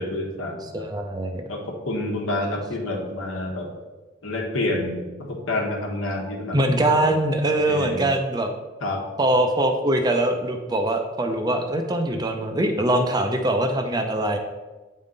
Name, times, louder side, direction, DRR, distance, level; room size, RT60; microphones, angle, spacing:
voice 1, 0.0-0.9 1.5-3.7 4.2-7.1 7.7-8.1 8.8-9.1, left 1 dB, 75° left, 0 dB, 1.2 m, -28 dB
voice 2, 0.7-1.4 6.5-8.5 9.2-14.4, right 1 dB, 20° right, 5 dB, 0.5 m, -22 dB
8.2 x 3.7 x 3.8 m, 1.2 s
head